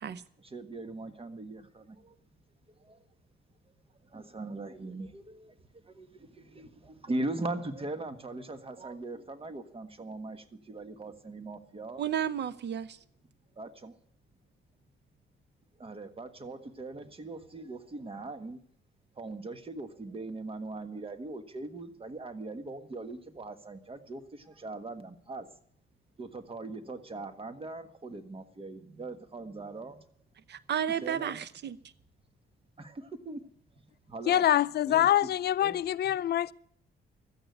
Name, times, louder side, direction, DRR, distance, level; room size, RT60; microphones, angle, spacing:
voice 1, 0.4-2.1 2.8-3.0 4.1-12.1 13.5-14.0 15.8-18.6 19.2-25.5 26.2-30.0 31.0-31.4 32.8-33.4 34.1-34.5 34.9-35.1 35.6-35.8, right 2 dB, 30° right, 1.5 m, -40 dB
voice 2, 12.0-13.0 30.5-31.8, right 9 dB, 60° right, 0.9 m, -32 dB
voice 3, 34.3-36.5, left 11 dB, 55° left, 0.5 m, -25 dB
13.5 x 8.9 x 9.3 m
cardioid pair, 90°, 20 cm